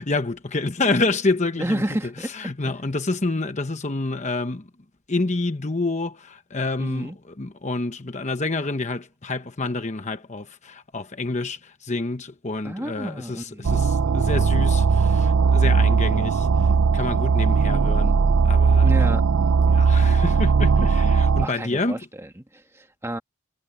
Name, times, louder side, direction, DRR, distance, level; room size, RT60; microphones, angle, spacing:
voice 1, 0.0-4.7 5.1-16.7 16.9-18.1 18.4-19.2 19.7-22.0, left 3 dB, 35° left, 1.0 m, -28 dB
voice 2, 1.6-2.3 2.6-2.7 6.8-7.2 12.6-13.8 18.8-19.2 21.4-23.2, right 1 dB, 10° right, 1.7 m, -31 dB
sound 1, 13.6-21.5, right 5 dB, 80° right, 0.5 m, -18 dB
head